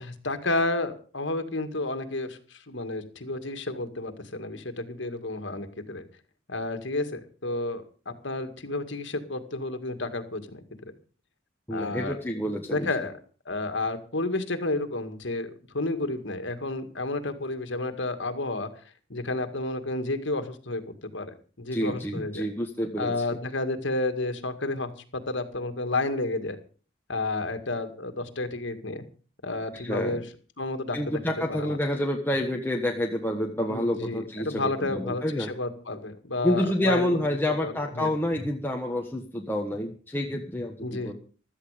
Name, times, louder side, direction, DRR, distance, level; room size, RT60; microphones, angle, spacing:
voice 1, 0.0-6.0 6.5-10.6 11.7-12.2 12.7-13.1 13.5-18.7 19.1-21.3 21.6-22.5 23.0-26.6 27.1-29.0 29.4-30.2 30.6-31.2 31.5-31.8 33.7-37.1 37.6-38.1 40.8-41.1, left 2 dB, 65° left, 8 dB, 2.1 m, -31 dB
voice 2, 11.7-12.9 21.7-23.4 29.7-30.2 30.9-35.5 36.4-41.1, left 1 dB, 10° left, 1 dB, 1.3 m, -28 dB
16.0 x 13.0 x 5.1 m, 0.38 s
head